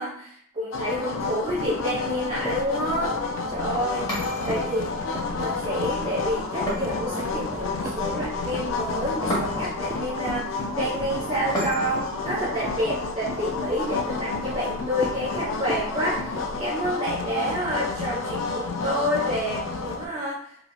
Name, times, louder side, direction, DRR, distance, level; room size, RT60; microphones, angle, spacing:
voice 1, 0.0-4.1 4.4-4.9 5.3-20.6, equal, 30° right, -10 dB, 0.9 m, -29 dB
sound 1, 0.7-20.1, left 4 dB, 75° left, 0.4 m, -30 dB
sound 2, 1.2-16.8, right 1 dB, 15° right, 0.3 m, -39 dB
Heavy Key Drop On Carpet multiple, 4.1-5.0 6.7-7.6 9.3-9.9 11.5-12.2, equal, 20° left, 1.1 m, -32 dB
3.0 x 2.7 x 2.3 m, 0.68 s
head